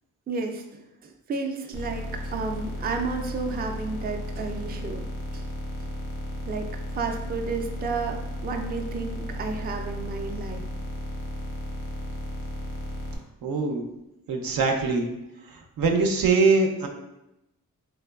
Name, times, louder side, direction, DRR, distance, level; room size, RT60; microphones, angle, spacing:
voice 1, 0.3-5.0 5.3-5.4 5.8-5.9 6.5-10.6, right 4 dB, 30° right, 4 dB, 0.4 m, -32 dB
sound 1, 1.7-13.2, equal, 85° left, 0.9 m, -34 dB
voice 2, 13.4-13.8 14.3-15.1 15.8-16.9, right 4 dB, 80° right, 2 dB, 0.5 m, -22 dB
3.3 x 2.9 x 2.2 m, 0.91 s
cardioid pair, 75°, 34 cm